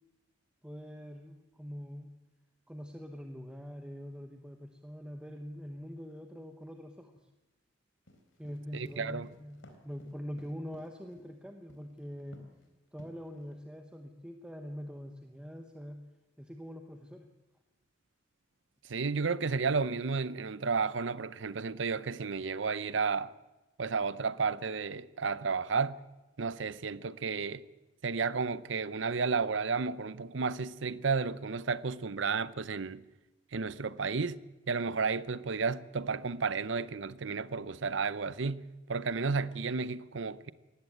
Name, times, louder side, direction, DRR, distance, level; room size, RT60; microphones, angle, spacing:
voice 1, 0.6-2.1 2.7-7.3 8.4-12.4 12.9-16.0 16.4-17.3, equal, 5° right, 1.0 m, -44 dB
sound 1, 8.1-11.3 11.7-12.0 12.3-12.6 13.0-13.5, equal, 75° left, 3.4 m, -56 dB
voice 2, 8.7-9.3 18.9-23.3 23.8-26.0 26.4-27.6 28.0-33.0 33.5-34.4 34.7-40.5, right 4 dB, 65° right, 0.7 m, -32 dB
19.0 x 15.0 x 9.2 m
head